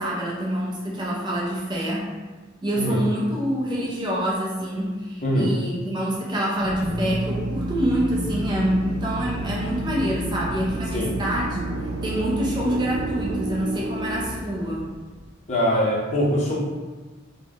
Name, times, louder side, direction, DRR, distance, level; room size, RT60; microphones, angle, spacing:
voice 1, 0.0-2.1 2.6-11.6 12.0-14.8, equal, 25° right, -4 dB, 0.4 m, -26 dB
voice 2, 5.2-5.5 10.9-11.2 15.5-16.6, equal, 35° left, -5 dB, 0.7 m, -22 dB
Drill, 6.5-15.2, right 1 dB, 85° right, 0.4 m, -30 dB
2.4 x 2.1 x 3.4 m, 1.3 s
head